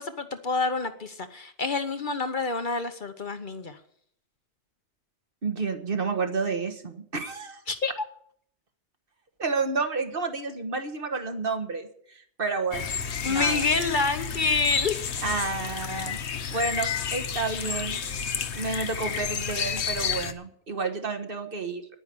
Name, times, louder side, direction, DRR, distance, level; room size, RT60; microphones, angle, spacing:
voice 1, 0.0-3.8 7.7-8.0 13.2-15.1, left 4 dB, 50° left, 9 dB, 1.0 m, -27 dB
voice 2, 5.4-7.6 9.4-13.0 13.2-13.7 15.2-16.2 16.5-18.0 18.5-21.8, right 4 dB, 50° right, 7 dB, 1.6 m, -30 dB
sound 1, 12.7-20.3, left 7 dB, 75° left, 1.2 m, -31 dB
10.0 x 9.9 x 8.3 m, 0.64 s
omnidirectional pair, 1.2 m